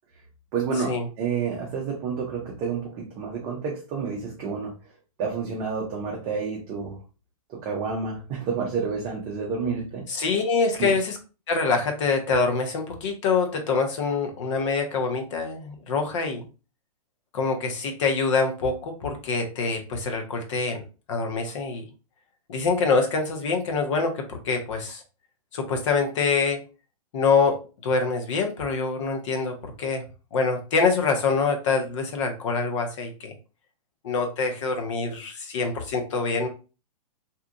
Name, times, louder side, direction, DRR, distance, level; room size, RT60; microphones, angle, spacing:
voice 1, 0.5-4.7 5.2-7.0 7.5-10.0 10.8-10.9, right 5 dB, 25° right, -2 dB, 0.7 m, -29 dB
voice 2, 10.1-11.2 11.5-16.4 17.3-20.8 21.1-21.8 22.5-25.0 25.5-26.6 27.1-30.0 30.3-33.3 34.0-36.5, left 4 dB, 50° left, 4 dB, 0.9 m, -25 dB
2.8 x 2.4 x 3.6 m, 0.32 s
hypercardioid pair, 150°, 20 cm